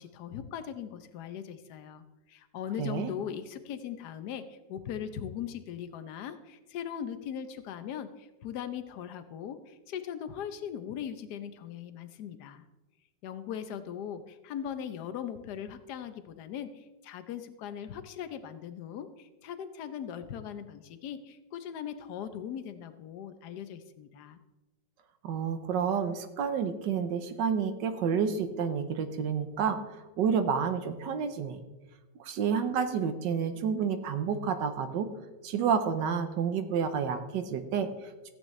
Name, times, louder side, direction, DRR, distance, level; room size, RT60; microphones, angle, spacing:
voice 1, 0.0-2.0 2.3-12.6 13.2-24.4, left 9 dB, 65° left, 10 dB, 1.3 m, -39 dB
voice 2, 2.8-3.1 25.2-31.6 32.2-35.1 35.4-38.3, right 7 dB, 75° right, 9 dB, 1.4 m, -30 dB
14.5 x 9.3 x 3.2 m, 1.1 s
omnidirectional pair, 2.0 m